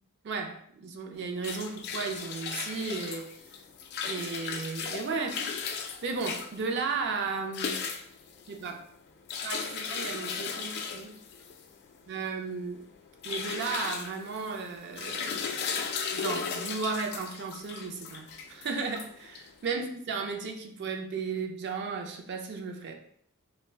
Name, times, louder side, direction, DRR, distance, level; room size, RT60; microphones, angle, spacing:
voice 1, 0.2-3.3 4.0-5.5 6.0-7.8 8.5-8.8 9.4-11.2 12.1-12.9 13.2-15.6 16.1-22.9, right 4 dB, 50° right, 4 dB, 0.4 m, -34 dB
sound 1, 1.1-19.7, left 6 dB, 50° left, 0.3 m, -37 dB
2.3 x 2.1 x 3.3 m, 0.65 s
head